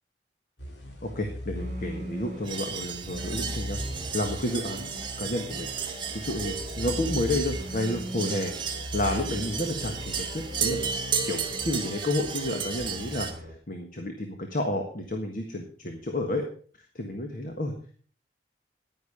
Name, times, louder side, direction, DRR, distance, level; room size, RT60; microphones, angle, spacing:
sound 1, 0.6-12.4, equal, 80° left, 2.9 m, -39 dB
voice 1, 1.0-3.8 4.1-4.9 5.2-8.5 8.9-10.9 11.2-13.3 13.7-16.4 16.9-17.7, left 1 dB, 50° left, 3 dB, 1.5 m, -31 dB
sound 2, 1.5-13.6, equal, 45° right, 2.7 m, -42 dB
sound 3, 2.4-13.3, right 6 dB, 30° right, 1.7 m, -34 dB
10.5 x 10.0 x 5.1 m, 0.43 s
head